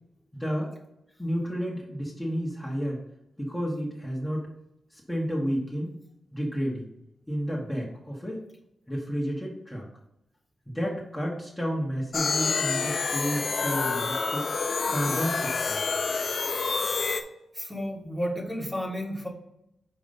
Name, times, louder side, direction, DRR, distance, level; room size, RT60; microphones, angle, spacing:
voice 1, 0.3-0.7 1.2-3.0 3.4-4.5 4.9-5.9 6.3-6.9 7.3-8.4 8.9-9.9 10.7-14.5 14.9-16.0, equal, 5° left, -3 dB, 1.5 m, -31 dB
sound 1, 12.1-17.2, left 4 dB, 60° left, 0.6 m, -28 dB
voice 2, 17.5-19.3, equal, 10° right, -2 dB, 1.7 m, -32 dB
5.4 x 4.7 x 5.4 m, 0.85 s
cardioid pair, 85°, 0 cm